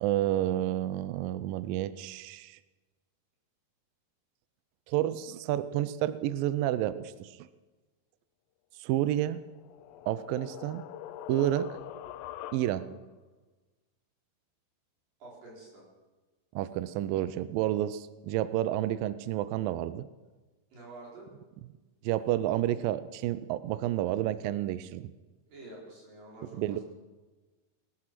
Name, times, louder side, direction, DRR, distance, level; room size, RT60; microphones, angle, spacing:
voice 1, 0.0-2.6 4.9-7.5 8.8-9.4 10.1-10.8 11.3-11.8 12.5-13.0 16.6-20.1 22.0-25.1 26.6-26.8, right 13 dB, 85° right, 15 dB, 2.0 m, -30 dB
sound 1, 9.3-13.1, left 11 dB, 85° left, 2.7 m, -43 dB
voice 2, 15.2-15.8 20.7-21.3 25.5-26.8, right 2 dB, 55° right, -3 dB, 5.8 m, -48 dB
19.0 x 12.5 x 6.0 m, 1.2 s
omnidirectional pair, 4.7 m